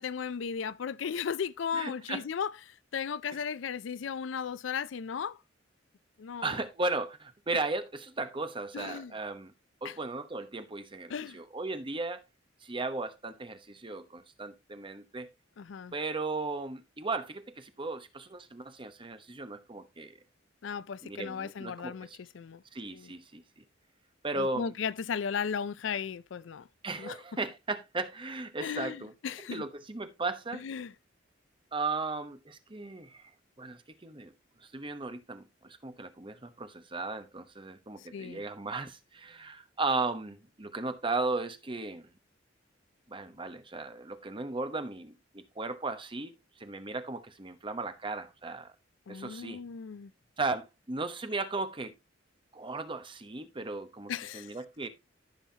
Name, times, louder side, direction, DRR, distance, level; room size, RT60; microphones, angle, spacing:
voice 1, 0.0-5.4 6.2-6.6 8.7-9.1 9.8-10.0 11.1-11.4 15.6-15.9 20.6-22.1 22.3-22.6 22.9-23.1 24.4-26.7 27.0-27.2 28.6-29.6 30.5-30.9 38.1-38.4 49.1-50.1 54.1-54.5, left 6 dB, 75° left, 0.4 m, -36 dB
voice 2, 1.7-2.2 6.4-9.5 9.8-12.2 12.6-15.3 15.9-20.1 21.0-22.2 22.7-23.6 24.2-24.7 26.8-29.1 29.5-30.6 31.7-33.3 33.6-34.3 34.7-42.1 43.1-46.3 46.6-48.7 49.1-49.6 50.4-51.9 52.5-54.9, right 3 dB, 25° right, 1.0 m, -36 dB
14.5 x 5.6 x 2.8 m
head